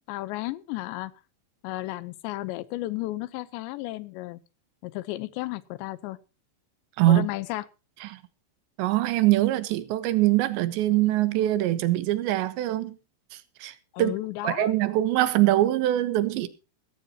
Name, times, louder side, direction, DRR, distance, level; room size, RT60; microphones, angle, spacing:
voice 1, 0.1-1.1 1.6-4.4 4.8-6.2 7.1-7.6 13.9-14.7, left 18 dB, 85° left, 3.1 m, -33 dB
voice 2, 8.8-13.0 13.6-14.1 14.4-16.5, right 15 dB, 85° right, 3.4 m, -23 dB
17.0 x 15.0 x 2.8 m
omnidirectional pair, 5.0 m